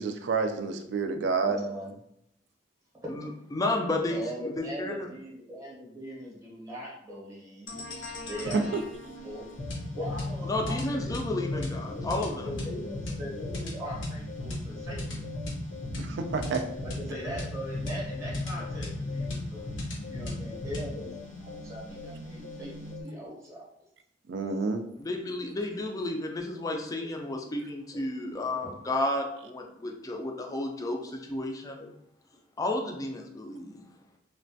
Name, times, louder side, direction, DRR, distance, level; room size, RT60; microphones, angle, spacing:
voice 1, 0.0-1.6 8.5-8.8 16.0-16.6 24.3-24.8, right 4 dB, 65° right, 7 dB, 0.3 m, -29 dB
voice 2, 1.4-1.9 3.0-3.1 4.1-7.7 8.3-8.8 9.2-9.4 9.9-11.2 11.9-15.2 16.8-23.7 25.2-25.3 28.5-28.7 31.8-31.9, equal, 15° right, -4 dB, 0.7 m, -40 dB
voice 3, 3.1-5.1 10.5-12.5 25.0-31.9 32.6-33.8, left 2 dB, 20° left, 2 dB, 0.3 m, -32 dB
sound 1, 7.7-23.0, left 2 dB, 85° left, 0.8 m, -36 dB
3.1 x 2.2 x 2.6 m, 0.77 s
head